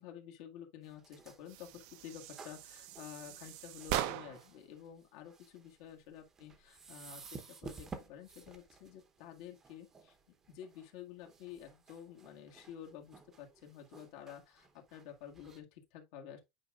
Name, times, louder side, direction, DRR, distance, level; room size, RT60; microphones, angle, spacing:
voice 1, 0.0-10.1 10.5-16.4, left 9 dB, 65° left, 1.7 m, -51 dB
sound 1, 0.8-15.6, right 4 dB, 15° right, 0.9 m, -55 dB
sound 2, 1.5-4.6, right 12 dB, 55° right, 0.7 m, -40 dB
8.5 x 4.8 x 2.4 m
cardioid pair, 170°, 2 cm